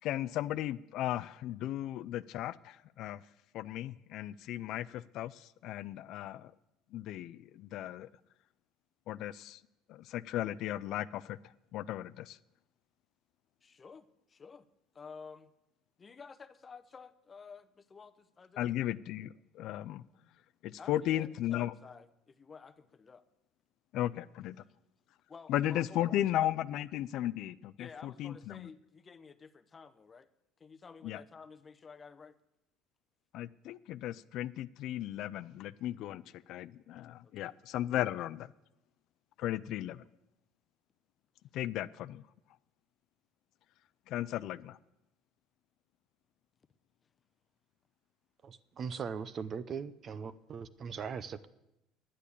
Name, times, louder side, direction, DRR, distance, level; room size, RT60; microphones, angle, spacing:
voice 1, 0.0-3.2 3.5-6.5 6.9-8.1 9.1-9.6 9.9-11.4 11.7-12.4 18.6-20.0 20.6-21.7 23.9-24.6 25.5-28.7 31.0-31.2 33.3-38.5 39.4-40.0 41.5-42.2 44.1-44.8, left 13 dB, 60° left, 0.4 m, -36 dB
voice 2, 13.6-14.7 14.9-15.5 16.0-18.7 20.8-23.2 25.3-26.2 27.8-30.3 30.6-32.4 37.2-37.5, left 5 dB, 25° left, 0.7 m, -52 dB
voice 3, 48.4-51.5, right 6 dB, 35° right, 0.6 m, -40 dB
9.9 x 9.1 x 8.4 m
cardioid pair, 130°, 0 cm